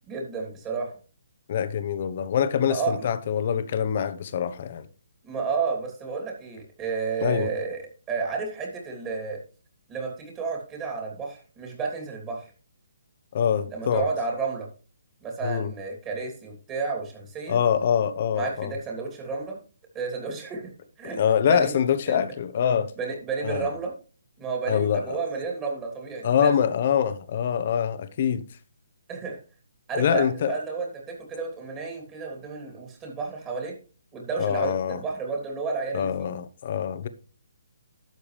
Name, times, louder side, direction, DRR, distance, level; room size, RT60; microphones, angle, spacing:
voice 1, 0.1-1.0 2.7-3.1 5.2-9.4 9.9-12.5 13.7-14.7 15.2-17.6 18.4-19.6 19.9-20.7 21.0-21.8 22.1-22.2 23.0-23.9 24.4-26.5 29.1-29.4 29.9-33.8 34.1-36.3, right 4 dB, 20° right, 2.9 m, -31 dB
voice 2, 1.5-4.9 7.2-7.5 13.3-14.1 15.4-15.7 17.5-18.7 21.2-22.9 23.4-23.7 24.7-25.2 26.2-28.5 29.9-30.5 34.4-35.0 35.9-37.1, left 8 dB, 45° left, 0.9 m, -24 dB
12.0 x 7.0 x 3.4 m
hypercardioid pair, 150°, 0 cm